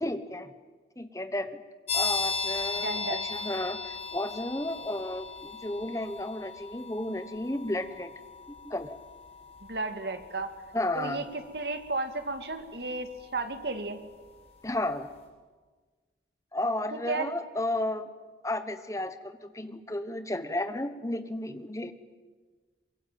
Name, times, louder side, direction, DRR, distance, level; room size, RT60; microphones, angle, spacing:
voice 1, 0.0-0.5 1.0-1.6 1.9-8.1 8.6-9.0 10.7-11.2 14.6-15.1 16.5-18.1 18.4-21.9, left 1 dB, 20° left, 10 dB, 1.2 m, -33 dB
sound 1, 1.9-14.4, left 4 dB, 35° left, 5.5 m, -38 dB
voice 2, 2.8-3.2 9.7-10.5 11.0-14.0 16.9-17.3, right 3 dB, 70° right, 7 dB, 2.2 m, -33 dB
23.5 x 22.5 x 9.2 m, 1.4 s
head